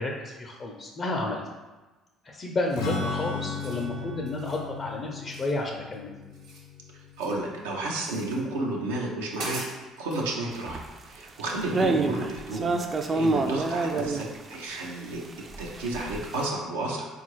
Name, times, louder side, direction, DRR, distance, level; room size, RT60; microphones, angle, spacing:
voice 1, 0.0-1.4 2.2-6.1, left 2 dB, 40° left, 0 dB, 0.5 m, -31 dB
Strum, 2.7-8.4, left 4 dB, 85° left, 0.6 m, -36 dB
sound 1, 2.7-3.0 3.4-3.9 4.3-4.6 5.3-6.0 6.2-7.5 8.0-8.4 8.9-9.0 9.3-10.3, right 2 dB, 70° right, 1.0 m, -41 dB
voice 2, 7.2-9.6 10.0-10.8 11.1-12.7 13.1-15.2 15.6-17.1, right 2 dB, 90° right, -2 dB, 0.5 m, -31 dB
sound 2, 10.7-10.9 11.2-11.4 11.7-14.6 15.3-16.5, right 3 dB, 35° right, 0.3 m, -27 dB
3.8 x 2.4 x 3.0 m, 1.2 s
hypercardioid pair, 65°, 0 cm